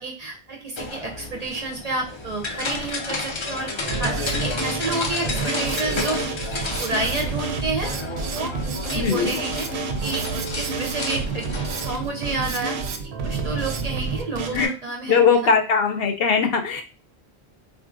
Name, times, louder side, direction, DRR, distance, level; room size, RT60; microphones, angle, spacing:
voice 1, 0.0-3.7 4.0-6.2 6.5-7.9 8.3-8.5 8.8-12.8 13.2-15.5, right 2 dB, 45° right, 1 dB, 0.6 m, -30 dB
sound 1, 0.8-11.9, left 3 dB, 45° left, 0.3 m, -31 dB
Drum kit, 3.8-14.7, right 4 dB, 80° right, 0.8 m, -29 dB
voice 2, 9.0-9.4 14.5-14.7 15.1-16.8, left 5 dB, 70° left, 5 dB, 0.8 m, -20 dB
3.7 x 2.5 x 2.5 m, 0.33 s
omnidirectional pair, 1.1 m